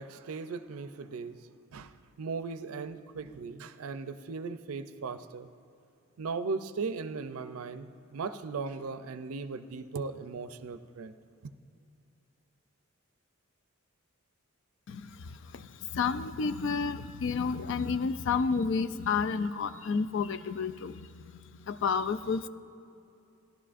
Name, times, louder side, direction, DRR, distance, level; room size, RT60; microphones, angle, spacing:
voice 1, 0.0-5.5 6.2-11.1 11.4-11.5, right 4 dB, 85° right, 0.5 m, -38 dB
voice 2, 14.9-22.5, left 5 dB, 60° left, 0.3 m, -31 dB
16.0 x 11.5 x 2.5 m
head